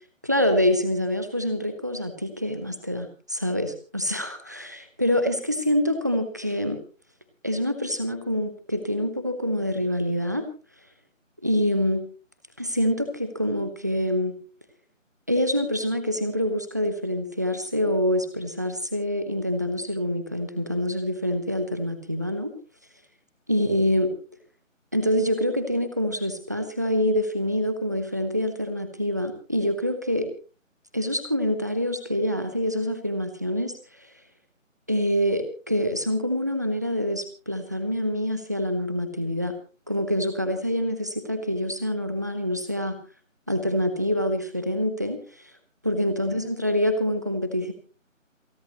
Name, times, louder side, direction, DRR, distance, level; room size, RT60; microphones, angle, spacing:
voice 1, 0.2-6.8 7.4-10.5 11.4-12.0 12.6-14.4 15.3-22.5 23.5-24.1 24.9-30.3 30.9-33.7 34.9-39.5 39.9-43.0 43.5-45.2 45.8-47.7, equal, 15° right, 8 dB, 0.9 m, -26 dB
28.0 x 11.0 x 3.0 m, 0.36 s
figure-of-eight pair, 160°, 39 cm